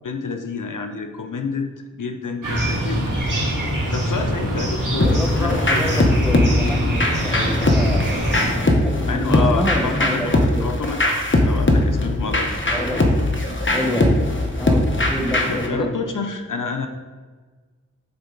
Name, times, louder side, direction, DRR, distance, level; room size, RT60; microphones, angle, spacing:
voice 1, 0.0-1.7 2.0-3.0 3.9-6.0 9.0-12.5 15.5-16.9, left 4 dB, 75° left, 5 dB, 0.7 m, -28 dB
sound 1, 2.4-8.5, equal, 75° right, 1.9 m, -24 dB
voice 2, 4.9-8.4 8.8-10.7 12.7-13.1 13.7-14.2 14.6-15.9, equal, ahead, 2 dB, 1.0 m, -27 dB
sound 2, 5.0-15.7, left 1 dB, 40° left, 1.1 m, -20 dB
10.5 x 4.4 x 3.9 m, 1.4 s
wide cardioid pair, 50°, 32 cm